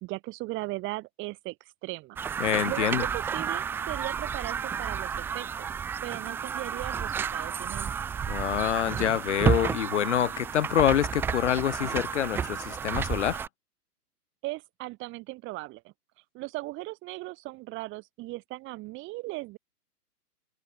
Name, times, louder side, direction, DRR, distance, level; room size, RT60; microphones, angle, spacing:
voice 1, 0.0-1.6 1.8-2.2 2.6-5.7 6.0-7.9 14.4-15.9 16.3-19.6, right 21 dB, 25° right, 3.2 m, -37 dB
sound 1, 2.2-13.5, right 7 dB, 5° right, 0.6 m, -31 dB
voice 2, 2.4-3.0 8.3-13.4, left 11 dB, 50° left, 0.9 m, -26 dB
figure-of-eight pair, 130°, 47 cm